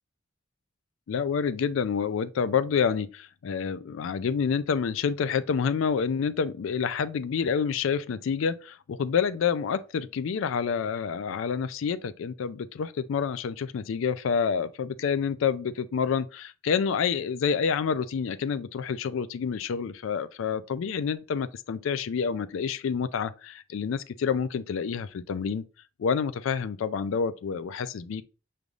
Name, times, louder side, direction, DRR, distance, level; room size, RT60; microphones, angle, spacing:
voice 1, 1.1-25.6 26.0-28.2, left 6 dB, 75° left, 0.3 m, -28 dB
5.2 x 3.3 x 2.4 m
head